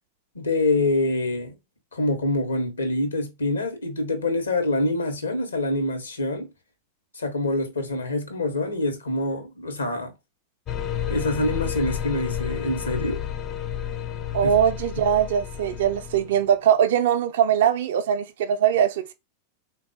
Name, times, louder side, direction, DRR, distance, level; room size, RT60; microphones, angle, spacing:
voice 1, 0.3-1.6 1.9-6.5 7.1-10.1 11.1-13.2 14.4-14.5, left 2 dB, 75° left, 0.8 m, -25 dB
sound 1, 10.7-16.4, left 9 dB, 30° left, 0.5 m, -31 dB
voice 2, 14.3-19.1, right 9 dB, 55° right, 0.4 m, -21 dB
3.6 x 2.3 x 2.3 m
figure-of-eight pair, 90°, 0 cm